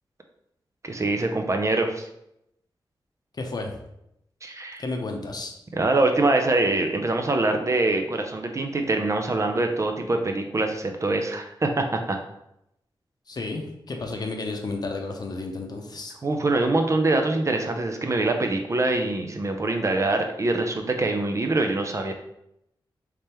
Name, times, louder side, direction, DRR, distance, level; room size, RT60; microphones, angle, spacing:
voice 1, 0.8-2.1 4.4-4.8 5.7-12.2 16.2-22.1, right 2 dB, 35° right, 4 dB, 0.5 m, -24 dB
voice 2, 3.3-3.8 4.8-5.5 13.3-16.1, left 3 dB, 50° left, 3 dB, 0.7 m, -32 dB
3.5 x 3.3 x 4.3 m, 0.81 s
wide cardioid pair, 105°, 9 cm